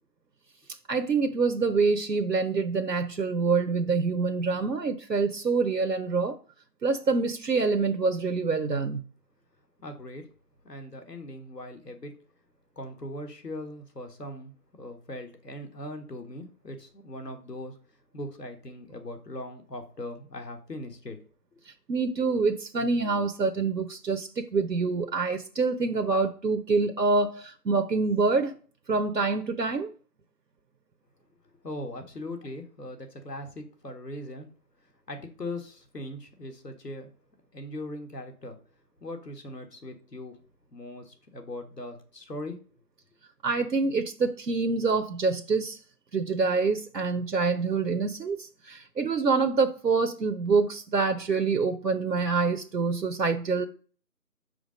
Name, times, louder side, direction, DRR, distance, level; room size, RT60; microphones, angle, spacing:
voice 1, 0.9-6.4 6.8-9.0 21.7-28.5 28.9-29.9 43.4-45.8 46.1-53.7, right 4 dB, 90° right, 7 dB, 0.9 m, -26 dB
voice 2, 9.8-10.3 10.6-12.1 12.8-17.7 18.1-21.2 31.6-34.5 35.1-37.1 37.5-38.6 39.0-40.4 40.7-42.6, left 1 dB, 80° left, 5 dB, 1.8 m, -40 dB
5.3 x 5.0 x 5.1 m, 0.40 s
figure-of-eight pair, 165°, 48 cm